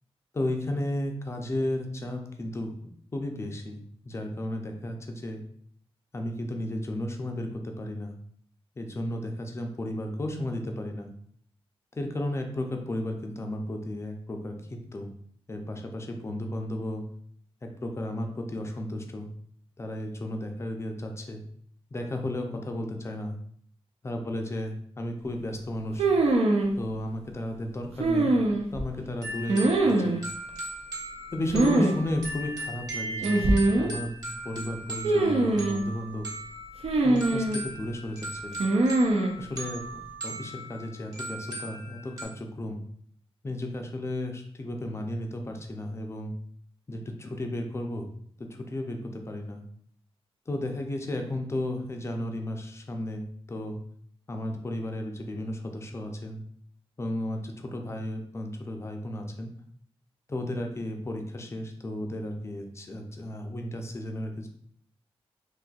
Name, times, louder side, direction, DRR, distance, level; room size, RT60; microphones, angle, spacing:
voice 1, 0.3-5.4 6.1-8.1 8.8-11.1 12.0-15.1 15.5-17.0 17.6-19.3 19.8-21.4 21.9-23.4 24.0-26.1 26.8-28.3 28.7-30.2 31.3-33.5 33.8-34.1 34.4-36.3 37.0-38.5 39.4-42.8 43.4-46.3 46.9-48.1 48.4-49.6 50.5-53.8 54.3-56.4 57.0-59.5 60.3-64.5, left 1 dB, 25° left, 4 dB, 0.4 m, -34 dB
sound 1, 26.0-26.7 28.0-28.8 29.5-30.2 31.5-32.0 32.2-32.3 33.2-33.9 35.0-35.8 36.8-37.6 38.6-39.4, right 2 dB, 75° right, 0.5 m, -23 dB
sound 2, 29.2-42.2, right 1 dB, 35° right, 1.2 m, -39 dB
3.9 x 2.6 x 2.3 m, 0.62 s
wide cardioid pair, 135°, 10 cm